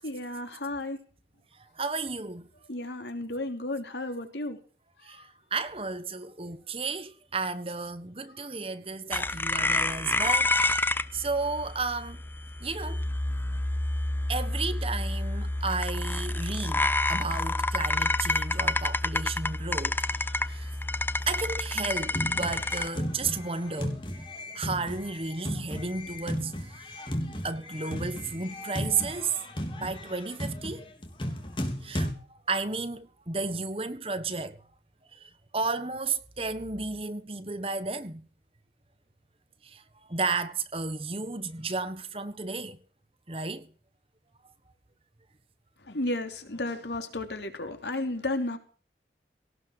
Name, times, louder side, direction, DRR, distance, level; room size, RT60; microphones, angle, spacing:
voice 1, 0.0-1.0 2.7-4.6 5.1-5.2 45.9-48.6, left 2 dB, 80° left, 3.2 m, -33 dB
voice 2, 1.6-2.5 5.0-12.2 12.6-13.1 14.3-20.7 21.3-24.0 24.5-27.0 27.4-29.4 29.8-30.9 31.8-34.6 35.1-38.2 39.6-39.8 40.1-42.8 43.3-43.7, right 4 dB, 30° right, 1.3 m, -33 dB
sound 1, 9.1-22.9, left 2 dB, 10° left, 0.5 m, -29 dB
sound 2, 21.9-32.1, equal, 30° left, 3.6 m, -35 dB
18.0 x 7.3 x 7.2 m
head